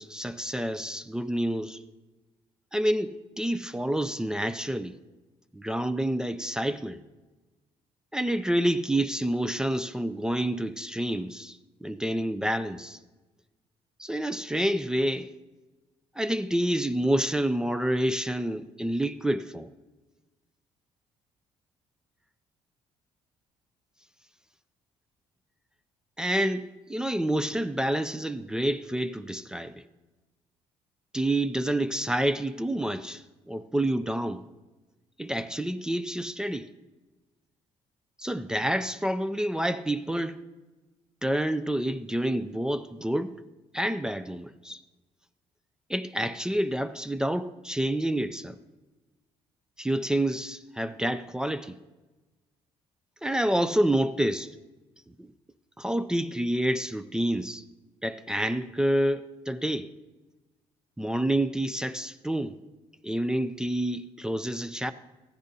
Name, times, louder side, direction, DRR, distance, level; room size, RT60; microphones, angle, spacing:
voice 1, 0.0-1.8 2.7-5.0 5.5-7.0 8.1-13.0 14.0-15.3 16.2-19.7 26.2-29.8 31.1-34.5 35.2-36.7 38.2-40.4 41.2-43.4 43.7-44.8 45.9-48.6 49.8-51.8 53.2-54.5 55.2-55.3 55.8-57.6 58.0-59.9 61.0-62.6 63.0-64.9, right 1 dB, 5° right, 0.3 m, -28 dB
14.5 x 10.0 x 2.7 m
cardioid pair, 135°, 11 cm